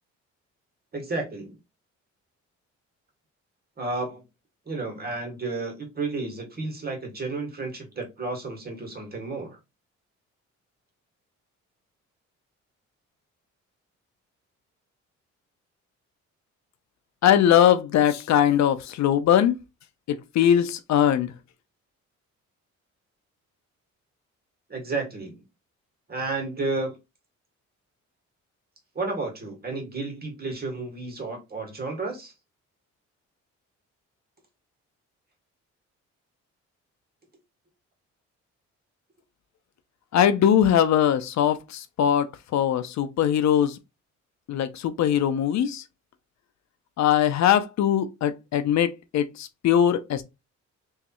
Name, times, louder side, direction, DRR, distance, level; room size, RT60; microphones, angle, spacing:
voice 1, 0.9-1.6 3.8-4.2 4.7-9.6 24.7-25.4 26.1-27.0 29.0-32.3, right 3 dB, 30° right, 1.8 m, -32 dB
voice 2, 17.2-19.6 20.1-21.3 40.1-43.8 44.5-45.8 47.0-50.2, left 10 dB, 65° left, 0.6 m, -21 dB
3.5 x 3.2 x 2.9 m
cardioid pair, 90°, 30 cm